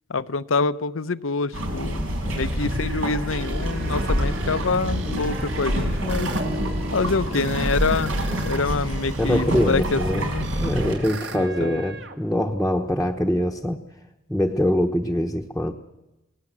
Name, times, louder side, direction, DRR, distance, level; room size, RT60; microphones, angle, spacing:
voice 1, 0.1-2.0 2.3-6.3 6.9-10.5 11.3-11.8, left 4 dB, 85° left, 14 dB, 0.8 m, -26 dB
sound 1, 1.5-10.9, equal, 85° right, 5.7 m, -27 dB
sound 2, 2.4-8.6 8.9-12.2, right 2 dB, 60° right, 2.2 m, -37 dB
sound 3, 3.5-9.5, right 1 dB, 30° right, 1.5 m, -37 dB
voice 2, 9.2-10.3 10.6-13.8 14.3-15.7, equal, ahead, 0 dB, 1.0 m, -23 dB
29.0 x 19.0 x 7.5 m, 0.98 s
head